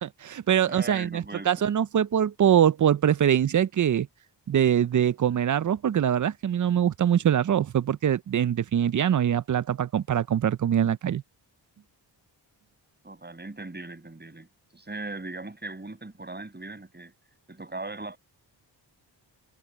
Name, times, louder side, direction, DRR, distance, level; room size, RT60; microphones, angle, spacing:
voice 1, 0.0-4.1 4.5-11.2, right 9 dB, 45° right, 0.5 m, -23 dB
voice 2, 0.6-1.7 13.0-17.1 17.5-18.2, right 2 dB, 20° right, 6.4 m, -39 dB
cardioid pair, 80°, 45 cm